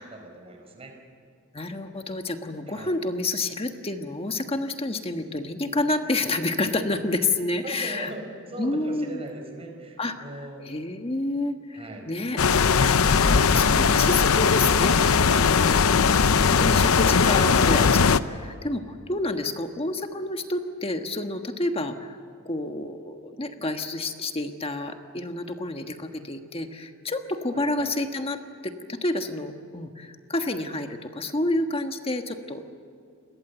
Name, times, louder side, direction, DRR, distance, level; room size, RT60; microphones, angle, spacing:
voice 1, 0.1-0.9 2.7-2.9 7.6-8.2 8.5-10.7 11.7-12.1 27.5-27.9, right 1 dB, 30° right, 3 dB, 4.8 m, -39 dB
voice 2, 1.5-8.1 8.6-9.2 10.0-10.2 10.6-12.4 12.9-14.9 15.3-22.2 22.4-32.7, left 2 dB, 25° left, 6 dB, 1.4 m, -29 dB
sound 1, 12.4-18.2, left 5 dB, 85° left, 0.7 m, -19 dB
29.5 x 22.0 x 8.1 m, 2.3 s
head